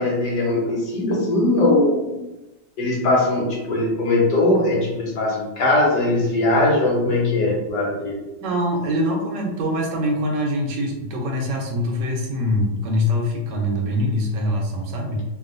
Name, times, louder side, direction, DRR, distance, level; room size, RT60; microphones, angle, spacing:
voice 1, 0.0-2.1 2.8-8.2, left 2 dB, 75° left, -3 dB, 1.3 m, -20 dB
voice 2, 8.4-15.2, left 1 dB, 75° right, 1 dB, 1.2 m, -23 dB
2.9 x 2.6 x 2.5 m, 1.0 s
omnidirectional pair, 2.0 m